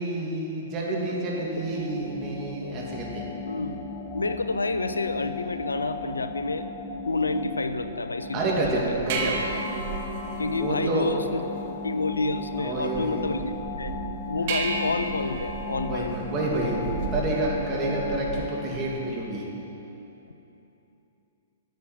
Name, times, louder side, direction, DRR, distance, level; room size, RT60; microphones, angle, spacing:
voice 1, 0.0-3.2 8.3-9.4 10.6-11.2 12.6-13.2 15.8-16.8 17.1-19.5, right 2 dB, 30° right, -3 dB, 2.6 m, -29 dB
sound 1, 0.7-19.6, left 4 dB, 20° left, 1.3 m, -37 dB
voice 2, 3.5-3.8 4.1-6.7 7.1-8.9 10.4-11.4 11.8-14.0 14.3-16.1 17.8-17.9, left 3 dB, 85° left, 11 dB, 0.6 m, -29 dB
sound 2, 8.6-18.6, right 4 dB, 45° right, 1.4 m, -35 dB
10.5 x 7.4 x 8.9 m, 3.0 s
figure-of-eight pair, 115°, 0 cm